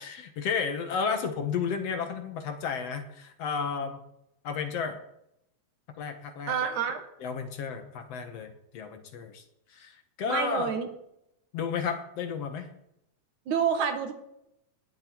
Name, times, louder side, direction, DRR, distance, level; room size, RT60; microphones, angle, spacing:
voice 1, 0.0-4.0 4.4-5.0 6.0-6.5 7.2-9.4 9.7-10.7 11.5-12.7, left 6 dB, 60° left, 7 dB, 2.3 m, -32 dB
voice 2, 6.5-7.0 10.3-10.9 13.5-14.1, right 7 dB, 80° right, 7 dB, 3.0 m, -28 dB
19.0 x 11.0 x 4.6 m, 0.80 s
omnidirectional pair, 3.4 m